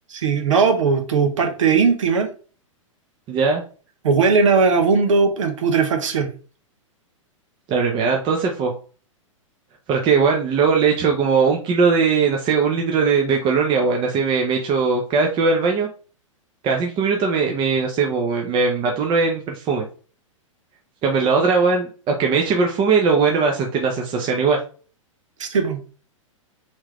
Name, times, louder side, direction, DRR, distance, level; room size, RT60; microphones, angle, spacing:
voice 1, 0.1-2.3 4.0-6.3 25.4-25.8, right 5 dB, 70° right, 1.1 m, -18 dB
voice 2, 3.3-3.6 7.7-8.7 9.9-15.9 16.6-19.8 21.0-24.6, right 5 dB, 30° right, 0.9 m, -19 dB
4.5 x 3.8 x 3.0 m
figure-of-eight pair, 105°, 17 cm